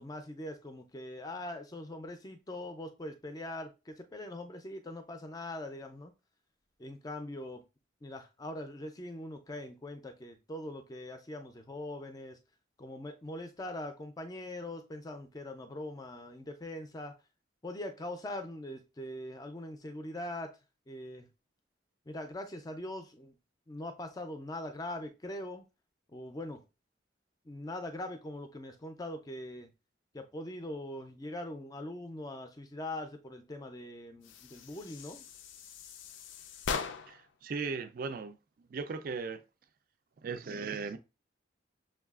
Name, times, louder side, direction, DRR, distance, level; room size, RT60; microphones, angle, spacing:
voice 1, 0.0-6.1 6.8-7.6 8.0-12.4 12.8-17.1 17.6-20.6 20.9-21.3 22.1-23.3 23.7-25.7 26.1-26.6 27.5-29.7 30.1-35.2, left 1 dB, 20° left, 0.4 m, -42 dB
sound 1, 34.2-37.3, left 5 dB, 85° left, 0.4 m, -40 dB
voice 2, 37.1-39.4 40.2-41.0, right 4 dB, 50° right, 0.4 m, -38 dB
6.3 x 2.3 x 2.3 m
head